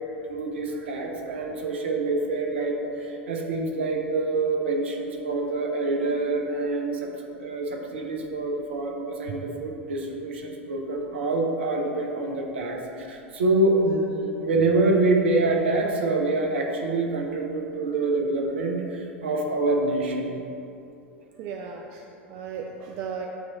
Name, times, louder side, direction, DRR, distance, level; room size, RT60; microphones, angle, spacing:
voice 1, 0.3-7.1 7.4-20.3, right 2 dB, 65° right, 1 dB, 0.8 m, -26 dB
voice 2, 21.4-23.3, right 6 dB, 45° right, 2 dB, 0.4 m, -36 dB
8.2 x 3.1 x 4.0 m, 2.8 s
figure-of-eight pair, 80°, 7 cm